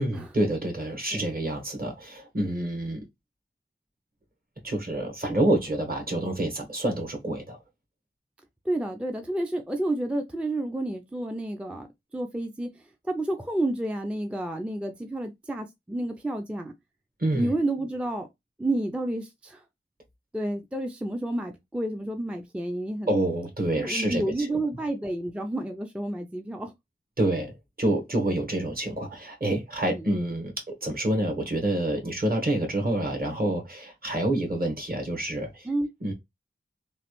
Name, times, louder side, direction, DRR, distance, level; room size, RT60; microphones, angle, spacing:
voice 1, 0.0-3.1 4.6-7.6 17.2-17.5 23.1-24.5 27.2-30.5 30.8-35.7 36.0-36.1, right 1 dB, 45° right, 1.1 m, -27 dB
voice 2, 8.7-11.9 12.1-12.7 13.0-16.7 17.3-18.3 18.6-19.6 20.3-23.1 23.8-26.7 29.9-30.2 35.6-35.9, right 1 dB, 5° right, 0.4 m, -30 dB
3.1 x 2.4 x 2.9 m
wide cardioid pair, 60°, 21 cm